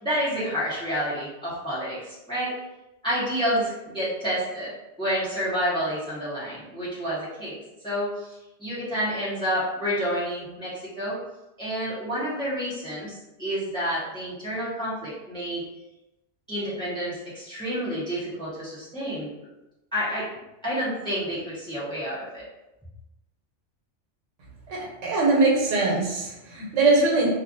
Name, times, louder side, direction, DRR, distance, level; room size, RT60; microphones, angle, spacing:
voice 1, 0.0-2.5 3.0-4.7 5.0-7.6 7.8-8.3 8.6-11.2 11.6-15.7 16.5-19.3 19.9-20.3 20.6-22.4, equal, 5° left, -9 dB, 0.7 m, -29 dB
voice 2, 24.7-27.3, right 3 dB, 85° right, -3 dB, 1.1 m, -22 dB
2.4 x 2.4 x 2.5 m, 0.95 s
omnidirectional pair, 1.2 m